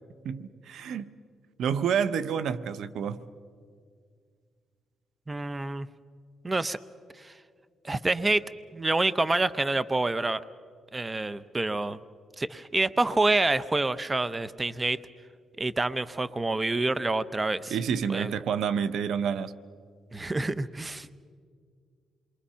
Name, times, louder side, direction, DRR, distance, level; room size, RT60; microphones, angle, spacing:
voice 1, 0.2-1.1 1.6-3.2 17.7-19.5, right 7 dB, 75° right, 15 dB, 0.8 m, -28 dB
voice 2, 5.3-5.9 6.4-6.8 7.2-7.3 7.8-8.4 8.7-10.4 10.9-12.0 12.4-15.0 15.6-17.8 18.1-18.3 20.1-21.1, right 2 dB, 20° right, 16 dB, 0.7 m, -27 dB
28.0 x 22.5 x 5.7 m, 2.1 s
cardioid pair, 85°, 0 cm